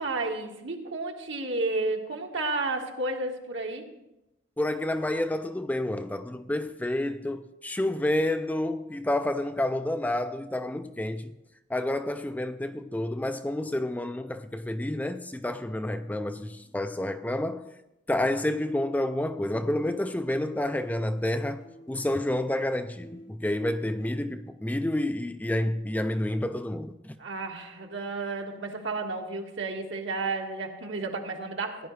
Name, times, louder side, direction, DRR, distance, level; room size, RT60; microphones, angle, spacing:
voice 1, 0.0-3.8 27.2-31.9, right 3 dB, 80° right, 1.6 m, -32 dB
voice 2, 4.6-11.3 11.7-17.7 18.1-27.1, left 1 dB, 10° left, 0.3 m, -29 dB
sound 1, 16.6-16.8 18.1-18.4 18.7-20.5 20.8-24.3, equal, 50° left, 4.5 m, -51 dB
17.0 x 10.5 x 3.2 m
head